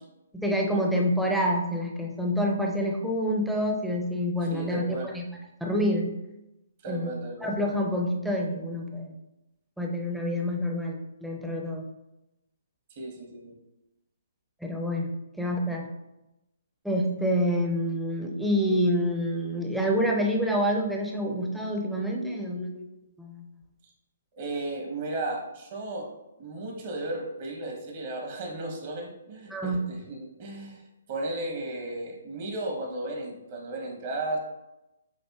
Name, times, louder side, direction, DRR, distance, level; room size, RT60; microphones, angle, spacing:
voice 1, 0.3-5.2 5.6-6.1 6.9-7.1 7.4-9.2 9.8-11.8 14.6-15.1 15.4-15.9 16.8-22.9 23.2-23.4 29.5-29.8, equal, ahead, -1 dB, 0.6 m, -27 dB
voice 2, 4.5-5.1 6.8-7.5 13.0-13.5 24.4-26.1 26.4-30.8 31.1-34.4, right 2 dB, 40° right, 0 dB, 1.0 m, -34 dB
7.3 x 2.5 x 2.3 m, 0.94 s
figure-of-eight pair, 135°, 0 cm